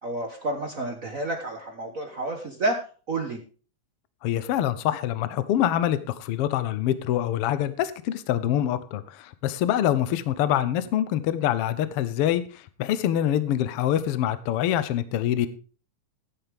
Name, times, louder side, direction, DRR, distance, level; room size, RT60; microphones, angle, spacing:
voice 1, 0.0-3.4, right 2 dB, 65° right, 3 dB, 0.8 m, -30 dB
voice 2, 4.2-15.5, left 11 dB, 70° left, 13 dB, 1.4 m, -25 dB
14.0 x 10.5 x 3.5 m, 0.38 s
omnidirectional pair, 3.4 m